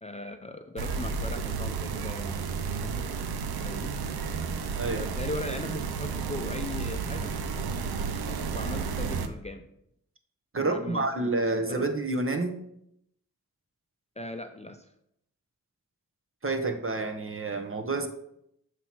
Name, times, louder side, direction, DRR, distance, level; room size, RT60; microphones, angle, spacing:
voice 1, 0.0-3.1 3.6-4.0 4.9-7.3 8.2-9.7 10.6-11.9 14.2-14.9, left 2 dB, 20° left, 6 dB, 0.6 m, -39 dB
sound 1, 0.8-9.3, right 5 dB, 90° right, 0.6 m, -32 dB
voice 2, 4.8-5.1 10.5-12.6 16.4-18.1, right 3 dB, 35° right, 5 dB, 1.0 m, -29 dB
7.6 x 3.0 x 6.0 m, 0.75 s
cardioid pair, 50°, 36 cm